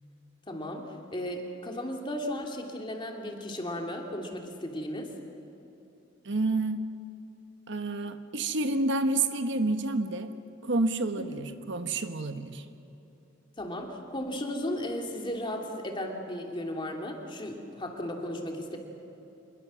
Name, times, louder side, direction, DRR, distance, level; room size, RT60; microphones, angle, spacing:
voice 1, 0.5-5.1 11.2-11.4 13.6-18.8, left 1 dB, 25° left, 2 dB, 2.5 m, -35 dB
voice 2, 6.2-6.8 7.7-10.3 10.6-12.6, right 2 dB, 65° right, 8 dB, 1.2 m, -29 dB
26.0 x 21.5 x 6.2 m, 2.9 s
head